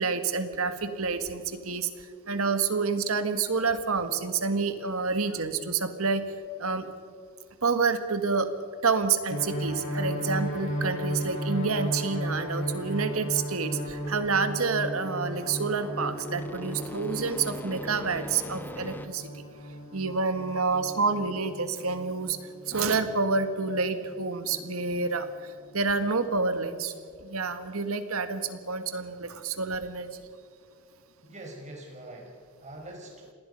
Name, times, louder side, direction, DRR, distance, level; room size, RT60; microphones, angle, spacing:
voice 1, 0.0-1.9 2.3-6.2 6.6-6.9 7.6-8.5 8.8-19.3 19.9-22.4 22.7-26.9 27.2-30.1, right 4 dB, 75° right, 9 dB, 1.7 m, -28 dB
sound 1, 9.3-26.2, equal, 65° left, 6.8 m, -36 dB
sound 2, 14.0-19.1, equal, 10° left, 1.1 m, -41 dB
voice 2, 31.2-33.3, right 1 dB, 35° right, 0 dB, 5.1 m, -44 dB
26.5 x 19.5 x 5.5 m, 2.3 s
head